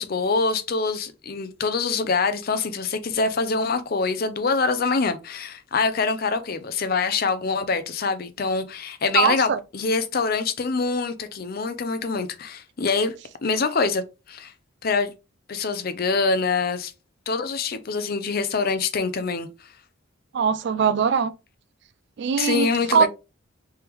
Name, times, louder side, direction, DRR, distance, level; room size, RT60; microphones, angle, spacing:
voice 1, 0.0-13.1 13.4-14.5 14.8-15.1 15.5-16.9 17.3-19.5 22.4-23.1, left 4 dB, 45° left, 0.5 m, -25 dB
voice 2, 9.1-9.6 20.3-21.3 22.2-23.1, right 6 dB, 55° right, 0.3 m, -21 dB
3.4 x 3.4 x 3.0 m
head